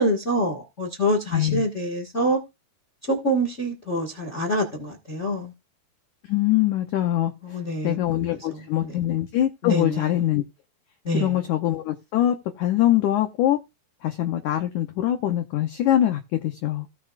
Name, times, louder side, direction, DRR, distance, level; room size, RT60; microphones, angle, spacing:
voice 1, 0.0-2.4 3.1-5.5 7.4-8.0 8.3-8.6 9.6-10.0 11.0-11.3, equal, 50° left, 0.8 m, -25 dB
voice 2, 1.3-1.6 6.2-7.3 7.8-10.4 11.1-13.6 14.0-16.9, left 12 dB, 80° left, 1.8 m, -23 dB
17.5 x 6.0 x 2.4 m
omnidirectional pair, 4.5 m